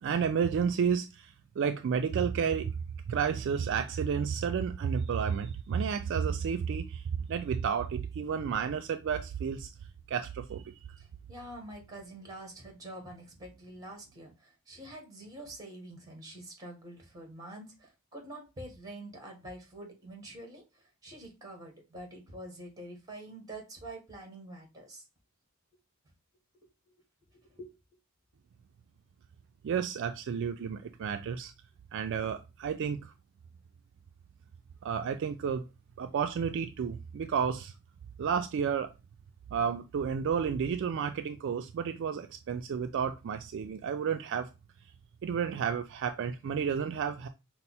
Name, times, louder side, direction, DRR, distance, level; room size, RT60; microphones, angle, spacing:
voice 1, 0.0-2.7 3.1-9.7 10.1-10.8 29.6-31.5 31.9-33.1 34.8-35.6 36.0-37.7 38.2-38.9 39.5-44.5 45.2-47.3, right 7 dB, 55° right, 0.3 m, -31 dB
voice 2, 11.0-25.0 27.5-27.7, right 1 dB, 15° right, 1.5 m, -46 dB
5.4 x 2.0 x 4.1 m
head